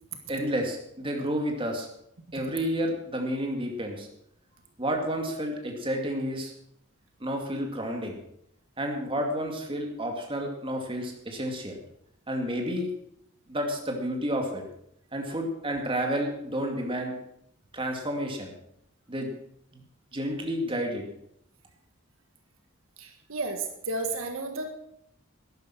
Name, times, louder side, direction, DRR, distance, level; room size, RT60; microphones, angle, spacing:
voice 1, 0.3-1.9 2.3-4.1 4.8-6.5 7.2-8.2 8.8-11.8 12.3-12.9 13.5-14.6 15.1-17.1 17.7-18.5 19.1-19.4 19.7-19.8 20.1-21.0, equal, 25° right, 2 dB, 2.3 m, -30 dB
voice 2, 23.0-24.7, right 3 dB, 70° right, 5 dB, 1.6 m, -32 dB
12.5 x 10.5 x 6.1 m, 0.75 s
head